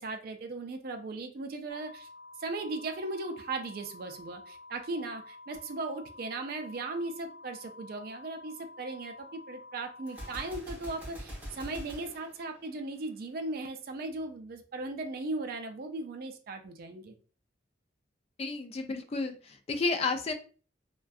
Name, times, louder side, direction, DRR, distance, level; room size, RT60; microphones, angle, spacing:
voice 1, 0.0-2.1 2.4-17.1, right 2 dB, 50° right, 5 dB, 0.4 m, -37 dB
sound 1, 1.7-10.5, left 3 dB, 80° left, 0.8 m, -50 dB
Gunshot gunfire, 10.1-13.2, equal, 10° right, 1.0 m, -44 dB
voice 2, 18.4-20.3, left 3 dB, 35° left, 7 dB, 0.3 m, -31 dB
2.6 x 2.2 x 2.3 m, 0.39 s
head